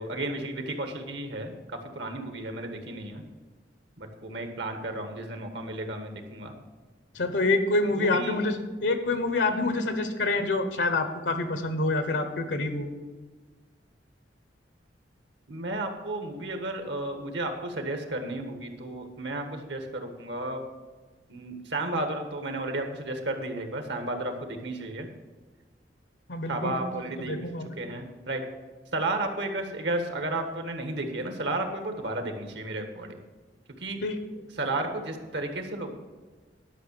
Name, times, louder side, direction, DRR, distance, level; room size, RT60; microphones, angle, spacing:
voice 1, 0.0-3.2 4.0-6.5 7.9-8.4 15.5-20.6 21.3-25.1 26.5-27.4 27.8-28.4 28.9-33.2 33.8-34.0 34.6-35.9, right 2 dB, 70° right, 5 dB, 1.5 m, -33 dB
voice 2, 7.1-12.9 26.3-26.8 27.3-27.7 34.0-34.2, left 2 dB, 80° left, 8 dB, 1.1 m, -27 dB
11.0 x 5.9 x 7.0 m, 1.3 s
head